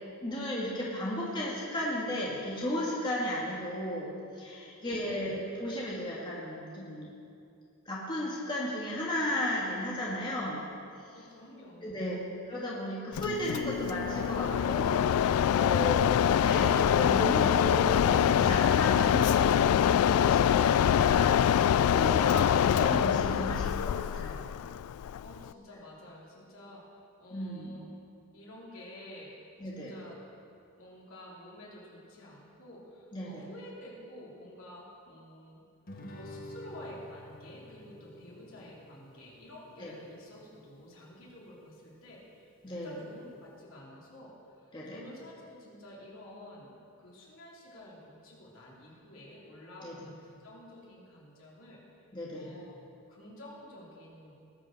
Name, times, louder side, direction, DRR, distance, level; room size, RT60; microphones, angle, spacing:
voice 1, 0.2-7.1 7.9-10.7 11.8-12.2 12.5-16.0 16.4-24.5 27.3-27.8 29.6-29.9 33.1-33.4 39.8-40.0 42.6-43.0 44.7-45.0 49.8-50.0 52.1-52.6, left 1 dB, 20° left, -6 dB, 2.0 m, -35 dB
voice 2, 4.8-5.4 11.1-12.2 25.2-26.9 27.2-27.9 28.3-29.4 29.6-30.2 30.8-35.6 36.1-46.7 47.0-51.8 52.3-54.3, left 1 dB, 65° left, -5 dB, 3.3 m, -50 dB
Mechanisms, 13.1-25.5, left 9 dB, 85° left, 0.3 m, -25 dB
Guitar, 35.9-40.9, left 1 dB, 40° left, 1.2 m, -49 dB
19.0 x 7.5 x 6.6 m, 2.5 s
head